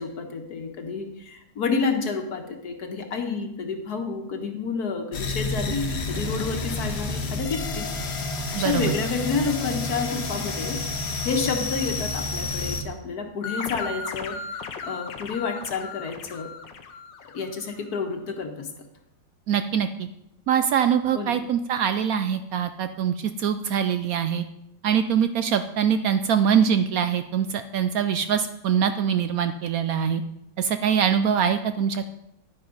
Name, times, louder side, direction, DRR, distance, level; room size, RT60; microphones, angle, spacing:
voice 1, 0.0-16.5 17.3-18.7 21.1-21.4, left 5 dB, 60° left, 5 dB, 1.7 m, -30 dB
sound 1, 5.1-12.8, left 3 dB, 45° left, 1.0 m, -30 dB
voice 2, 8.5-8.9 19.5-20.1 20.5-24.4 24.8-30.2 30.6-32.1, right 8 dB, 75° right, 10 dB, 0.8 m, -23 dB
sound 2, 13.4-17.8, left 4 dB, 80° left, 1.6 m, -36 dB
11.0 x 9.5 x 4.0 m, 0.81 s
omnidirectional pair, 2.0 m